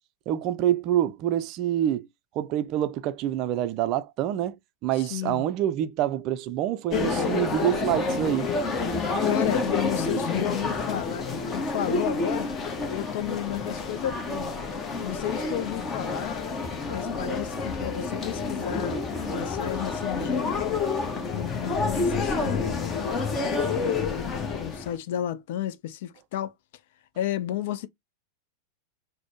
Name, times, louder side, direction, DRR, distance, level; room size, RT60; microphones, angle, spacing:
voice 1, 0.3-2.1 2.4-4.6 4.8-8.5, right 11 dB, 40° right, 0.4 m, -26 dB
voice 2, 4.9-5.5 8.9-12.5 12.9-14.5 15.0-16.5 16.9-19.0 19.3-20.9 21.3-26.5 27.2-27.9, left 11 dB, 50° left, 0.4 m, -33 dB
sound 1, 6.9-24.9, left 4 dB, 25° left, 0.9 m, -29 dB
4.1 x 2.1 x 2.9 m
figure-of-eight pair, 90°, 0 cm